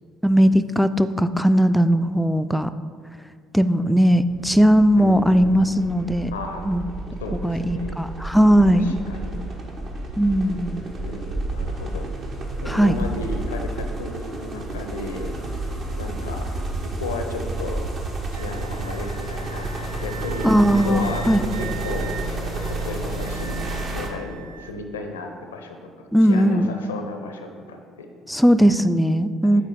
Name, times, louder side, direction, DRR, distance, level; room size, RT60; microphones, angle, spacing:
voice 1, 0.2-2.7 3.5-6.3 6.6-6.8 7.4-8.9 10.2-10.8 12.7-13.0 20.4-21.5 26.1-26.7 28.3-29.6, equal, ahead, 11 dB, 0.3 m, -18 dB
sound 1, 4.3-24.1, right 2 dB, 50° right, 1.0 m, -30 dB
voice 2, 5.0-5.5 6.3-6.7 7.2-8.0 8.7-9.4 11.0-12.1 12.6-16.5 16.8-17.8 18.3-20.6 20.8-21.2 21.6-22.1 22.7-23.6 23.9-28.1 29.4-29.6, left 2 dB, 85° left, 5 dB, 0.5 m, -34 dB
Wind instrument woodwind instrument, 18.3-24.7, right 4 dB, 80° right, 0.3 m, -40 dB
8.1 x 4.2 x 3.5 m, 2.1 s
hypercardioid pair, 55°, 0 cm